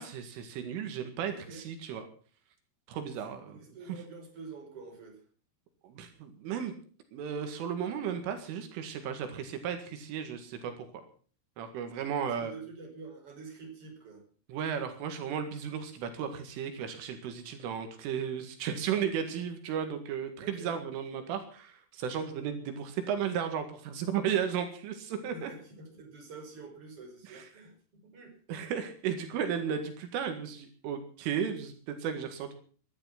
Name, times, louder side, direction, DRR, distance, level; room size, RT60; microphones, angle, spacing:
voice 1, 0.0-2.0 2.9-3.6 5.8-6.7 7.1-10.7 11.6-12.5 14.5-25.5 27.3-27.4 28.5-32.5, right 8 dB, 80° right, 7 dB, 4.5 m, -34 dB
voice 2, 1.3-1.6 3.2-5.2 12.2-14.2 20.4-20.8 25.3-28.4, right 4 dB, 30° right, 2 dB, 5.9 m, -47 dB
20.0 x 12.0 x 5.9 m, 0.43 s
omnidirectional pair, 5.6 m